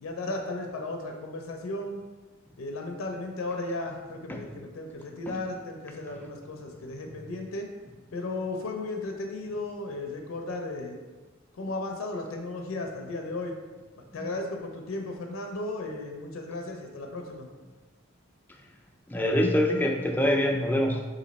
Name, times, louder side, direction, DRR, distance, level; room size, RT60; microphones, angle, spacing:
voice 1, 0.0-2.0 2.6-7.7 8.1-11.0 11.6-13.5 14.1-17.5, left 2 dB, 85° left, 3 dB, 0.4 m, -35 dB
voice 2, 19.1-21.1, left 1 dB, 10° left, 1 dB, 0.3 m, -25 dB
3.0 x 2.6 x 4.0 m, 1.3 s
head